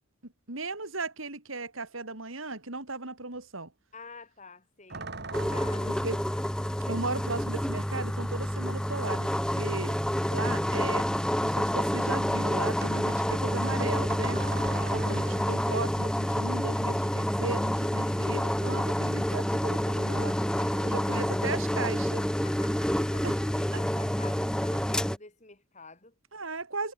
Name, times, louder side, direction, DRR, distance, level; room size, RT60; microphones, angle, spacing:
voice 1, 0.2-3.7 5.9-6.2 6.9-10.0 10.3-11.1 11.4-14.4 14.9-20.3 20.8-22.3 23.2-23.3 26.3-26.9, right 3 dB, 75° right, 4.1 m, -36 dB
voice 2, 3.9-5.1 5.5-6.0 6.3-6.7 14.8-15.1 18.0-18.3 20.2-21.5 22.4-26.1, left 3 dB, 35° left, 5.3 m, -49 dB
sound 1, 4.9-6.2 7.7-7.8 8.4-9.7 10.0-11.5 12.8-15.8 17.8-18.8 19.0-19.5 19.9-20.9, right 3 dB, 50° right, 2.5 m, -43 dB
sound 2, 5.3-25.2, equal, 5° left, 0.9 m, -28 dB
head